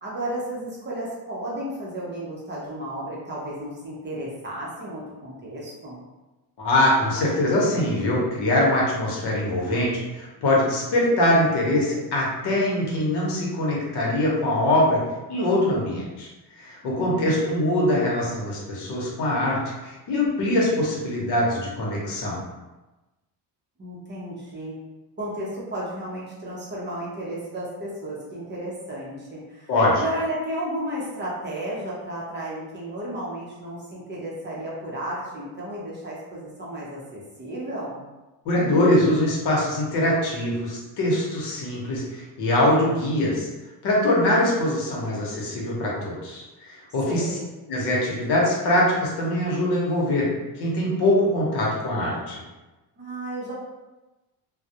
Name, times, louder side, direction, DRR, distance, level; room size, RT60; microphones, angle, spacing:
voice 1, 0.0-6.0 16.8-17.5 23.8-24.7 25.2-38.0 47.1-47.5 53.0-53.5, right 1 dB, 25° right, -6 dB, 0.5 m, -33 dB
voice 2, 6.6-15.0 15.3-16.3 16.5-22.4 29.7-30.0 38.4-43.5 43.8-47.3 47.7-50.2 50.6-52.4, left 1 dB, 65° left, -4 dB, 0.8 m, -23 dB
2.2 x 2.0 x 2.7 m, 1.1 s
cardioid pair, 140°, 43 cm